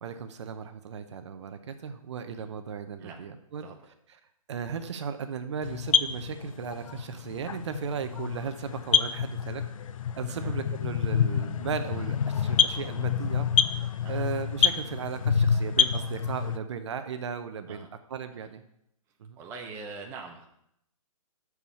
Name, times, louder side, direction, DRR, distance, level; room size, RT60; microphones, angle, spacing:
voice 1, 0.0-3.6 4.5-9.6 10.2-13.5 14.1-17.9 18.1-18.6 19.2-19.4, right 6 dB, 50° right, 9 dB, 0.7 m, -36 dB
sound 1, 5.6-16.6, left 7 dB, 65° left, 0.5 m, -27 dB
voice 2, 19.4-20.5, right 4 dB, 15° right, 1 dB, 0.7 m, -43 dB
7.2 x 4.7 x 6.9 m, 0.76 s
hypercardioid pair, 155°, 18 cm